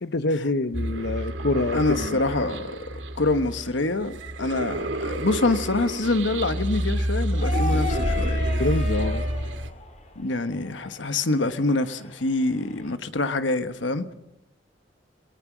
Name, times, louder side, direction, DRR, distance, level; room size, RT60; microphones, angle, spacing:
voice 1, 0.0-2.2 8.6-9.2, left 2 dB, 65° left, 0.8 m, -26 dB
sound 1, 0.7-9.7, right 1 dB, 80° right, 2.3 m, -28 dB
voice 2, 1.7-2.8 3.1-8.4 10.2-14.0, left 2 dB, 80° left, 1.3 m, -25 dB
sound 2, 7.3-12.9, left 4 dB, 40° left, 2.5 m, -36 dB
sound 3, 9.4-10.5 10.8-10.9, equal, 30° right, 2.5 m, -34 dB
27.5 x 19.5 x 6.2 m
head